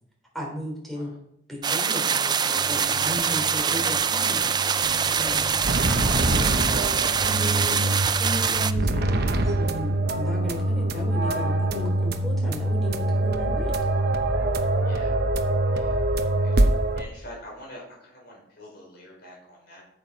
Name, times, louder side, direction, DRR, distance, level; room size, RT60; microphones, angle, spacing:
voice 1, 0.3-1.1 1.5-6.9 7.2-7.8 8.1-13.7, equal, ahead, -2 dB, 3.7 m, -35 dB
sound 1, 1.6-8.7, right 6 dB, 25° right, 0.4 m, -24 dB
sound 2, 2.6-17.0, right 1 dB, 55° right, 0.9 m, -25 dB
sound 3, 4.8-17.6, right 1 dB, 75° left, 3.8 m, -45 dB
voice 2, 14.8-15.2 15.7-16.7 17.0-19.8, left 1 dB, 55° left, -2 dB, 4.8 m, -46 dB
8.9 x 7.8 x 5.5 m, 0.74 s
head